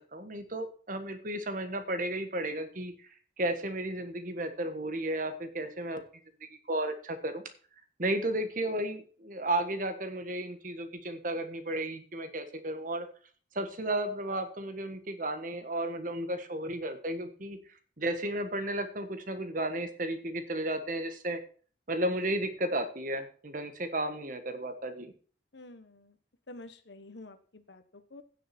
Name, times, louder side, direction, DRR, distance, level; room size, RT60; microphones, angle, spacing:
voice 1, 0.1-3.1 3.4-6.0 6.4-7.4 8.0-13.1 13.5-17.6 18.0-21.4 21.9-25.1, right 1 dB, 45° right, 8 dB, 1.5 m, -33 dB
voice 2, 25.5-26.1 26.5-27.8 28.1-28.2, left 2 dB, 70° left, 9 dB, 1.2 m, -48 dB
16.0 x 6.7 x 4.4 m, 0.43 s
head